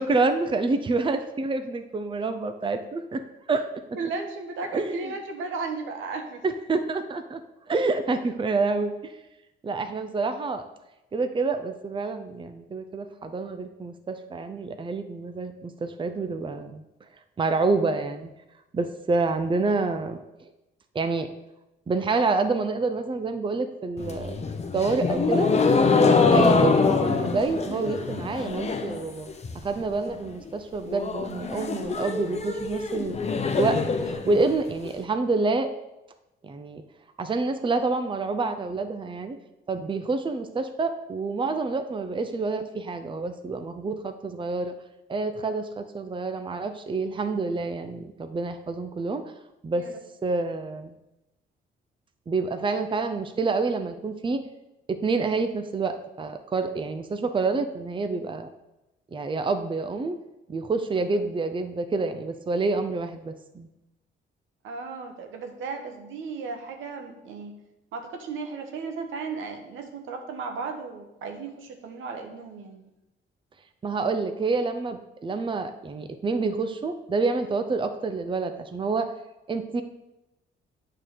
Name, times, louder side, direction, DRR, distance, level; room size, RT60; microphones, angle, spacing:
voice 1, 0.0-3.2 3.5-3.7 4.7-5.1 6.4-7.4 7.7-9.1 9.6-10.6 11.1-16.8 17.4-18.3 18.7-20.2 20.9-21.3 21.9-24.3 24.7-25.5 25.8-33.2 33.6-35.7 36.4-36.8 37.2-39.4 39.7-44.7 45.1-49.2 49.6-49.9 50.2-50.9 52.3-54.4 54.9-58.5 59.1-60.2 60.5-63.7 73.8-79.1 79.5-79.8, right 3 dB, 25° right, 8 dB, 0.7 m, -28 dB
voice 2, 3.9-6.4 49.8-50.0 64.6-67.6 67.9-72.9, right 4 dB, 85° right, 4 dB, 1.2 m, -35 dB
sound 1, 24.0-29.0 29.3-29.8 30.1-30.2 30.5-30.6 30.9-34.9, left 4 dB, 35° left, 0.9 m, -24 dB
8.8 x 3.8 x 6.7 m, 0.95 s
cardioid pair, 90°, 20 cm